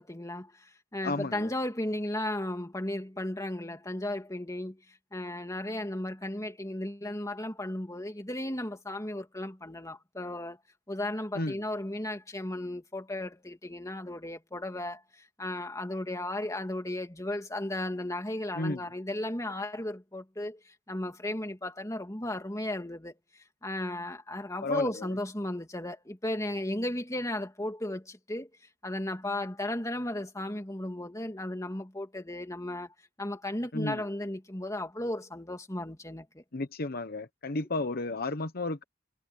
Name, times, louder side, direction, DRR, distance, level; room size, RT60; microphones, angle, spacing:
voice 1, 0.0-4.8 5.1-10.6 10.9-23.1 23.6-28.5 28.8-36.4, left 1 dB, 15° left, 2.6 m, -35 dB
voice 2, 1.0-1.5 11.3-11.6 18.6-18.8 24.6-24.9 33.7-34.0 36.5-38.8, left 2 dB, 55° left, 1.1 m, -32 dB
head